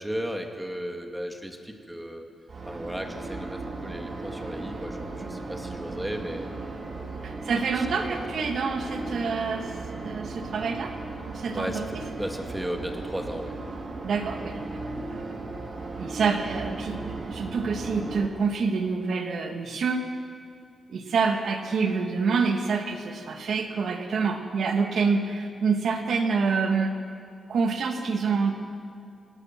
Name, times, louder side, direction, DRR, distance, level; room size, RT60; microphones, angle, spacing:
voice 1, 0.0-2.3 2.6-6.5 7.7-8.3 11.5-13.6, equal, 10° right, 3 dB, 2.4 m, -35 dB
sound 1, 2.5-18.3, right 3 dB, 50° right, 3.5 m, -36 dB
voice 2, 7.2-11.0 11.3-12.0 14.0-15.6 16.0-20.1 20.9-26.9 27.5-28.5, right 5 dB, 70° right, 4 dB, 2.2 m, -27 dB
29.0 x 17.5 x 6.2 m, 2.4 s
cardioid pair, 100°, 0 cm